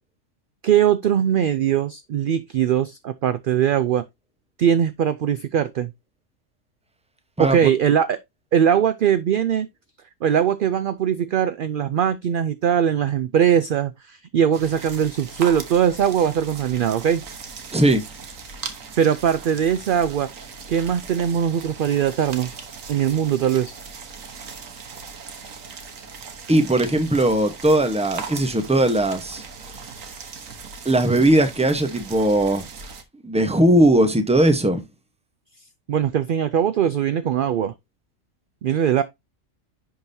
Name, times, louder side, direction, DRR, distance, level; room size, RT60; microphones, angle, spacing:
voice 1, 0.6-4.0 4.6-5.9 7.4-8.2 8.5-9.7 10.2-17.2 19.0-20.3 20.7-22.5 22.9-23.7 35.9-37.7 38.6-39.0, right 9 dB, 65° right, 0.5 m, -21 dB
sound 1, 14.5-33.0, right 5 dB, 80° right, 1.5 m, -38 dB
voice 2, 17.7-18.0 26.5-29.4 30.8-32.7 33.2-34.8, right 1 dB, 5° right, 0.8 m, -19 dB
10.5 x 4.0 x 2.7 m
omnidirectional pair, 1.4 m